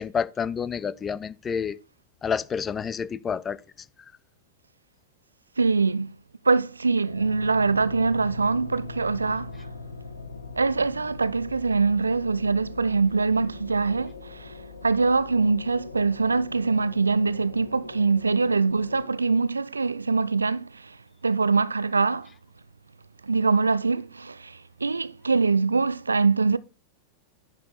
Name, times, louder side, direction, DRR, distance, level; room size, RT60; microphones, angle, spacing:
voice 1, 0.0-1.8 2.2-3.6, left 6 dB, 20° left, 0.5 m, -29 dB
voice 2, 5.6-6.1 6.4-9.6 10.6-14.5 14.8-21.0 21.2-22.3 23.2-26.6, right 4 dB, 80° right, 0.4 m, -23 dB
sound 1, 7.1-19.0, left 3 dB, 75° left, 1.1 m, -41 dB
10.0 x 5.1 x 3.9 m
figure-of-eight pair, 90°, 0 cm